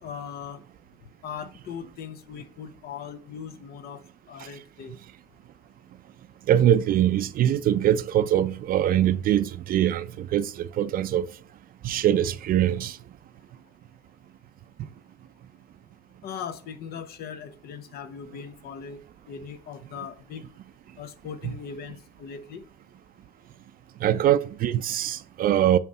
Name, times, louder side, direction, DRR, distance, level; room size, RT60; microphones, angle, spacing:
voice 1, 0.0-0.6 1.2-4.0 4.3-4.9 16.2-19.0 19.3-20.4 21.0-22.7, left 7 dB, 70° left, 1.0 m, -39 dB
voice 2, 6.5-11.3 11.8-13.0 24.0-25.8, right 11 dB, 60° right, 0.5 m, -23 dB
9.2 x 3.2 x 5.5 m
cardioid pair, 110°, 17 cm